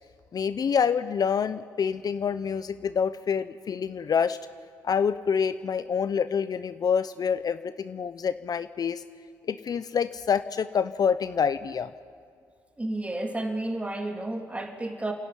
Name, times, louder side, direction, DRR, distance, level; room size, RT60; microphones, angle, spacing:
voice 1, 0.3-4.4 4.8-9.0 9.5-11.9, left 7 dB, 50° left, 13 dB, 0.7 m, -27 dB
voice 2, 12.8-15.1, right 1 dB, 15° right, 3 dB, 3.3 m, -31 dB
29.0 x 11.0 x 9.7 m, 2.1 s
supercardioid pair, 65°, 8 cm